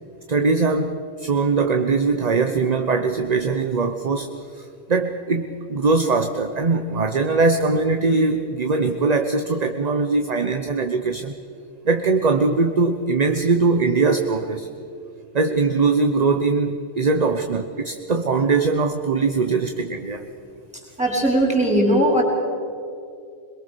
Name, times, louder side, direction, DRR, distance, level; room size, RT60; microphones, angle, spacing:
voice 1, 0.3-11.3 11.8-14.7 15.3-20.3, right 4 dB, 40° right, 6 dB, 1.0 m, -21 dB
voice 2, 21.0-22.2, right 1 dB, 5° right, -1 dB, 4.8 m, -18 dB
22.5 x 22.0 x 6.9 m, 2.4 s
omnidirectional pair, 1.1 m